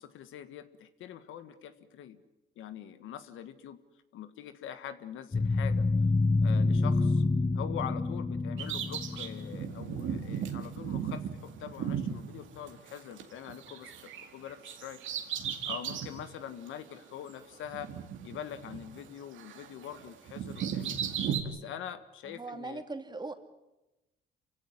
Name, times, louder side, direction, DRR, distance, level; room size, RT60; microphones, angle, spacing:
voice 1, 0.0-2.2 2.5-3.8 4.1-5.9 6.4-7.2 7.5-15.0 15.3-17.9 18.2-21.0 21.4-22.8, left 9 dB, 85° left, 11 dB, 1.6 m, -44 dB
sound 1, 5.3-10.4, left 3 dB, 20° left, 0.9 m, -28 dB
Bird vocalization bird call bird song, 8.6-13.2 13.5-16.2 16.7-16.8 17.7-19.1 19.4-21.4, right 8 dB, 80° right, 2.4 m, -36 dB
voice 2, 22.2-23.3, right 3 dB, 20° right, 7 dB, 2.5 m, -40 dB
27.0 x 16.5 x 9.7 m, 0.98 s
cardioid pair, 90°, 20 cm